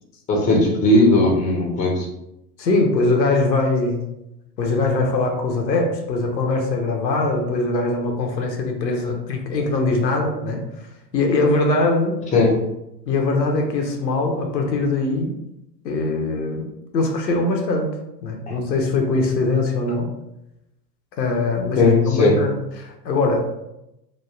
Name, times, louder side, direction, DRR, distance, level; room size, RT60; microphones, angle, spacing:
voice 1, 0.3-2.1 12.3-12.6 18.5-18.6 21.8-22.4, left 2 dB, 15° left, -1 dB, 0.6 m, -17 dB
voice 2, 2.6-4.0 4.6-10.6 11.1-12.2 13.1-15.3 15.8-16.7 16.9-20.1 21.2-23.5, left 3 dB, 90° left, 2 dB, 0.7 m, -22 dB
3.0 x 2.3 x 2.3 m, 0.87 s
hypercardioid pair, 95°, 50 cm